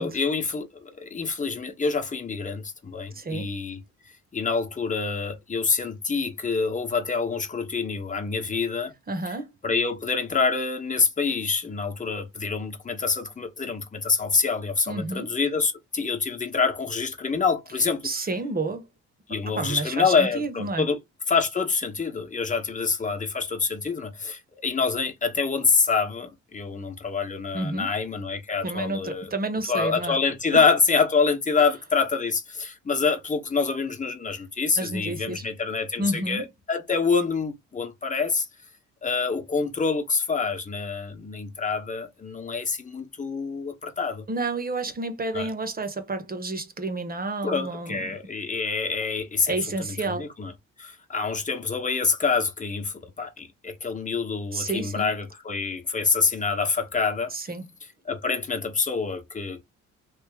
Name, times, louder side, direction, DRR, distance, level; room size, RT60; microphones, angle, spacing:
voice 1, 0.0-3.8 4.3-8.9 9.6-18.1 19.3-21.0 21.3-29.3 29.7-38.5 39.0-44.3 45.3-45.5 47.4-49.5 50.1-50.5 50.8-57.3 58.0-59.6, left 5 dB, 25° left, 1.1 m, -26 dB
voice 2, 3.1-3.5 9.1-9.5 14.9-15.3 18.0-18.8 19.5-20.9 27.5-27.9 28.6-30.2 30.5-30.6 31.6-31.7 34.8-35.5 36.0-36.4 44.3-48.1 49.5-50.3 54.5-55.1 57.3-57.7, right 2 dB, 30° right, 1.0 m, -30 dB
3.3 x 2.9 x 3.4 m
cardioid pair, 90°, 30 cm